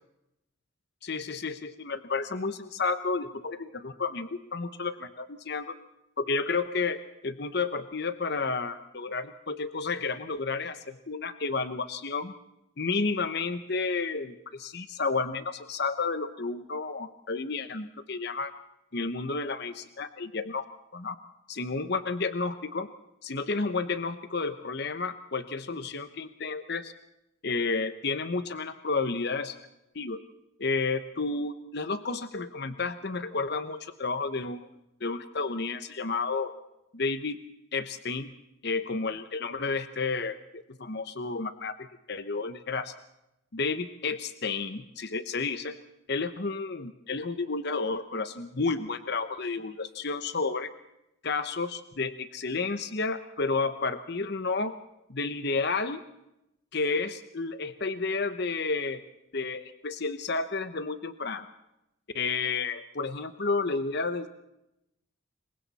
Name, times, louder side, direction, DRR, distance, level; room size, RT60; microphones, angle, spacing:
voice 1, 1.0-5.7 6.2-12.3 12.8-18.5 18.9-20.6 20.9-21.2 21.5-22.9 23.2-26.9 27.4-29.6 29.9-30.2 30.6-34.7 35.0-36.5 36.9-37.4 37.7-38.3 38.6-42.9 43.5-45.8 46.1-50.7 51.2-54.8 55.1-56.0 56.7-59.0 59.3-61.5 62.1-64.4, left 4 dB, 55° left, 10 dB, 0.9 m, -31 dB
27.0 x 23.0 x 4.2 m, 0.86 s
head